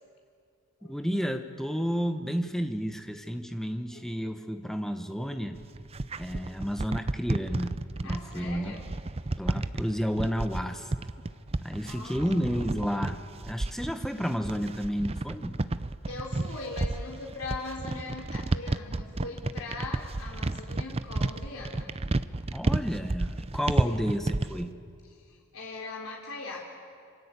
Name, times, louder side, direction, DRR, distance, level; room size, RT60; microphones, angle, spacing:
voice 1, 0.9-5.6 6.2-7.7 8.0-8.8 9.4-10.9 11.6-13.2 13.5-15.6 22.5-24.7, equal, ahead, 6 dB, 1.3 m, -31 dB
voice 2, 3.9-4.4 6.3-6.5 7.9-8.9 11.9-12.7 14.2-14.4 16.1-21.9 23.8-24.1 25.1-26.6, left 3 dB, 85° left, -1 dB, 3.6 m, -41 dB
sound 1, 5.5-24.7, right 2 dB, 30° right, 0.6 m, -31 dB
27.5 x 25.5 x 8.4 m, 2.3 s
head